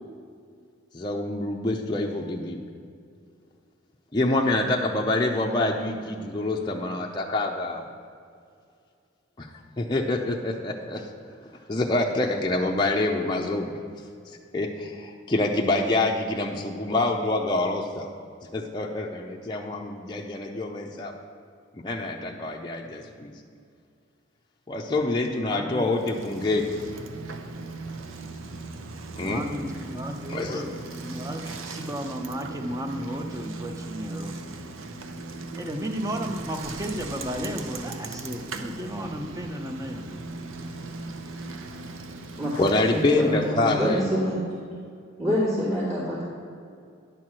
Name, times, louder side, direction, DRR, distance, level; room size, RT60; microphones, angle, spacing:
voice 1, 0.9-2.6 4.1-7.9 9.4-9.5 9.8-11.1 11.7-13.7 14.3-18.1 18.5-21.1 21.7-23.3 24.7-26.7 29.2-29.4 30.3-30.6 42.5-44.0, left 2 dB, 20° left, -1 dB, 0.5 m, -26 dB
voice 2, 25.5-25.9 29.1-34.6 35.5-40.1, equal, 15° right, 5 dB, 0.7 m, -34 dB
Bicycle, 25.9-43.4, right 3 dB, 85° right, 0.7 m, -38 dB
voice 3, 42.9-44.4 45.2-46.2, equal, 35° right, -11 dB, 2.7 m, -26 dB
10.5 x 4.6 x 7.4 m, 2.3 s
head